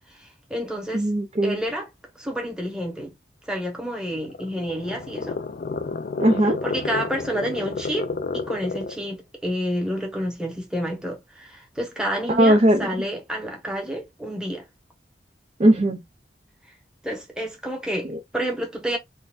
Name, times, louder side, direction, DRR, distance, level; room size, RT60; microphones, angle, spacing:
voice 1, 0.2-1.1 1.4-1.9 2.2-3.1 3.5-5.4 6.6-8.1 8.3-14.6 17.0-19.0, equal, 5° right, 1.1 m, -29 dB
voice 2, 0.9-1.6 6.2-6.6 12.3-12.9 15.6-16.0 18.1-18.2, right 1 dB, 35° right, 0.4 m, -18 dB
sound 1, 4.1-9.1, left 4 dB, 50° left, 0.4 m, -31 dB
3.9 x 2.5 x 2.4 m
head